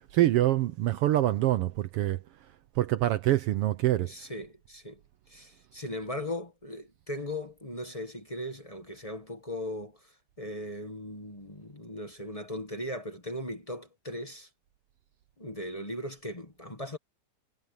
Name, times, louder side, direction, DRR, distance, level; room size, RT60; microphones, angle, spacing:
voice 1, 0.0-2.2 2.8-4.1, right 14 dB, 80° right, 1.3 m, -25 dB
voice 2, 4.0-5.0 5.3-10.0 10.4-14.5 15.4-17.0, left 1 dB, 20° left, 1.0 m, -38 dB
omnidirectional pair, 3.4 m